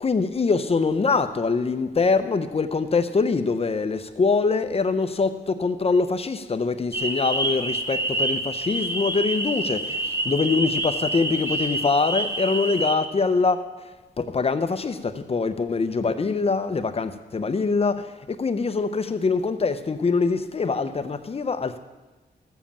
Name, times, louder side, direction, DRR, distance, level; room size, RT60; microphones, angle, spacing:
voice 1, 0.0-5.3 5.6-8.4 8.7-9.8 10.3-13.6 14.3-14.9 15.3-18.0 18.4-21.8, left 4 dB, 35° left, 0.7 m, -23 dB
sound 1, 6.9-12.9, right 1 dB, 15° right, 1.1 m, -27 dB
13.5 x 7.4 x 7.2 m
wide cardioid pair, 120°, 19 cm